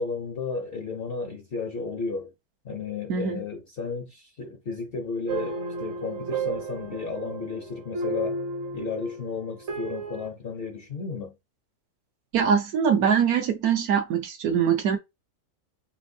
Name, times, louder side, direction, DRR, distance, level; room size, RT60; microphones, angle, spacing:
voice 1, 0.0-2.3 2.6-8.4 8.7-11.3, left 4 dB, 55° left, 0.7 m, -33 dB
voice 2, 3.1-3.4 12.3-15.0, right 7 dB, 75° right, 1.2 m, -23 dB
sound 1, 5.3-10.3, right 3 dB, 55° right, 1.0 m, -33 dB
4.3 x 2.9 x 2.6 m
omnidirectional pair, 1.6 m